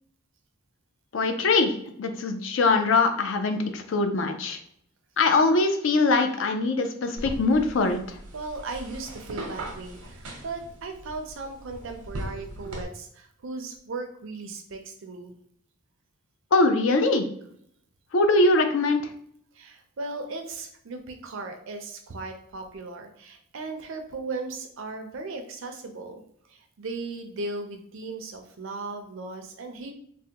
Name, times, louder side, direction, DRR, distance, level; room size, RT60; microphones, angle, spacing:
voice 1, 1.1-4.6 5.2-8.2 16.5-17.2 18.1-19.1, left 3 dB, 60° left, 6 dB, 0.4 m, -22 dB
sound 1, 7.2-12.8, right 1 dB, 85° right, 0.8 m, -39 dB
voice 2, 8.3-15.3 19.5-26.2 26.5-29.9, right 3 dB, 60° right, 5 dB, 0.5 m, -37 dB
3.3 x 2.1 x 2.8 m, 0.68 s
head